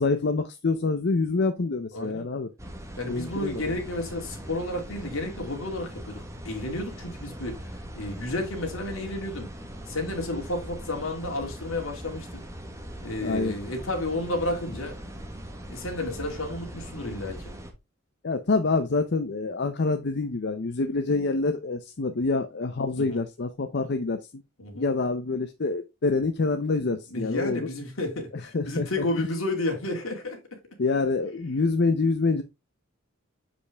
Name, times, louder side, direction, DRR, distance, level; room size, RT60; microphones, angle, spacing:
voice 1, 0.0-2.5 3.0-3.8 13.2-13.5 18.2-24.2 24.7-27.7 28.5-28.9 30.8-32.4, left 3 dB, 50° left, 0.6 m, -26 dB
voice 2, 1.9-2.3 3.0-9.5 9.9-12.4 13.0-15.0 15.7-17.5 23.0-23.2 24.6-24.9 27.1-30.6, left 1 dB, 70° left, 2.3 m, -32 dB
sound 1, 2.6-17.7, equal, 15° right, 1.2 m, -40 dB
6.7 x 5.1 x 3.4 m
head